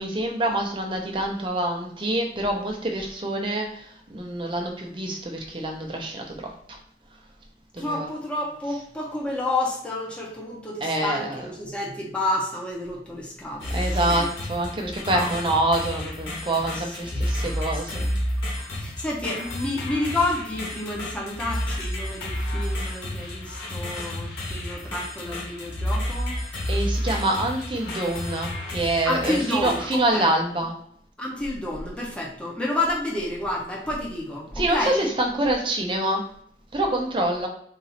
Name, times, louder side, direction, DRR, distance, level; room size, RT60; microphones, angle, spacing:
voice 1, 0.0-6.8 7.7-8.1 10.8-11.5 13.7-18.1 26.7-30.7 34.6-36.2 36.7-37.5, right 1 dB, 30° right, 1 dB, 0.7 m, -26 dB
voice 2, 7.8-14.3 15.1-15.3 16.6-17.7 18.5-26.4 29.0-30.3 31.2-35.1, left 1 dB, 5° left, -4 dB, 0.9 m, -30 dB
sound 1, 13.6-30.0, equal, 90° left, 1.7 m, -31 dB
4.0 x 2.7 x 4.1 m, 0.68 s
head